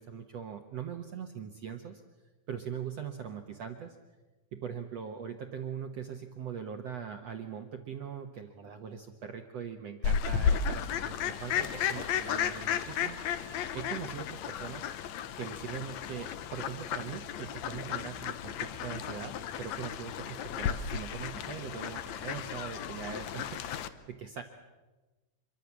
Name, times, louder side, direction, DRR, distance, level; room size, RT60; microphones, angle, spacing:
voice 1, 0.0-2.0 2.5-4.0 4.5-14.9 15.3-24.4, right 7 dB, 70° right, 4 dB, 1.6 m, -41 dB
Fowl, 10.0-23.9, left 8 dB, 90° left, 1.5 m, -34 dB
26.5 x 23.5 x 7.3 m, 1.2 s
omnidirectional pair, 4.6 m